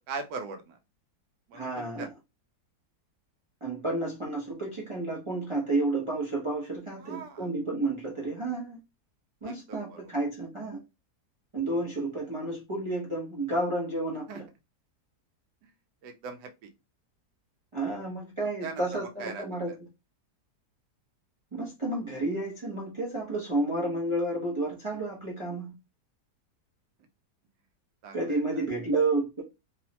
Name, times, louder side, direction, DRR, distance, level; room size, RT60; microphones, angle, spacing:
voice 1, 0.1-0.8 1.5-2.1 7.0-7.5 9.4-10.1 11.7-11.9 14.3-14.4 15.6-15.7 16.0-16.7 18.6-19.8 28.0-28.6, right 4 dB, 85° right, 1.2 m, -41 dB
voice 2, 1.5-2.1 3.6-8.8 9.4-10.8 11.5-14.4 17.7-19.7 21.5-25.7 28.1-29.4, right 2 dB, 40° right, 0.4 m, -31 dB
3.1 x 2.0 x 2.8 m
omnidirectional pair, 1.7 m